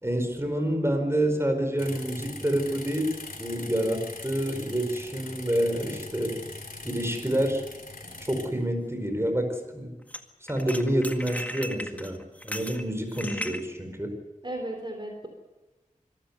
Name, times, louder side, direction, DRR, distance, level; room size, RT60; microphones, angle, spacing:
voice 1, 0.0-6.4 6.8-7.6 8.2-9.9 10.5-14.1, right 1 dB, 20° right, 5 dB, 4.7 m, -28 dB
sound 1, 1.8-8.5, left 2 dB, 90° left, 2.9 m, -41 dB
sound 2, 7.9-8.0 10.1-10.2 10.5-13.6, equal, 10° left, 1.8 m, -36 dB
voice 2, 13.2-13.6 14.4-15.3, right 1 dB, 35° right, 3 dB, 3.6 m, -36 dB
25.0 x 14.5 x 8.1 m, 1.1 s
wide cardioid pair, 55°, 14 cm